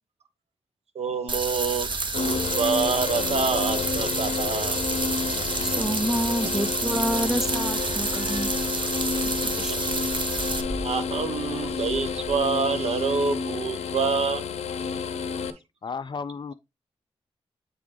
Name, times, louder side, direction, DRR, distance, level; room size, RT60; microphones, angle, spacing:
voice 1, 0.9-1.9 2.1-4.8 9.5-10.0 10.8-14.4, right 5 dB, 75° right, 0.8 m, -27 dB
sound 1, 1.3-10.6, right 3 dB, 50° right, 0.9 m, -29 dB
sound 2, 2.1-15.5, left 5 dB, 85° left, 0.6 m, -30 dB
sound 3, 4.5-12.5, right 1 dB, 30° right, 1.9 m, -42 dB
voice 2, 5.6-8.5 9.6-9.7, equal, 5° right, 0.5 m, -28 dB
voice 3, 15.8-16.5, left 5 dB, 45° left, 0.5 m, -33 dB
7.7 x 3.7 x 3.2 m
cardioid pair, 55°, 11 cm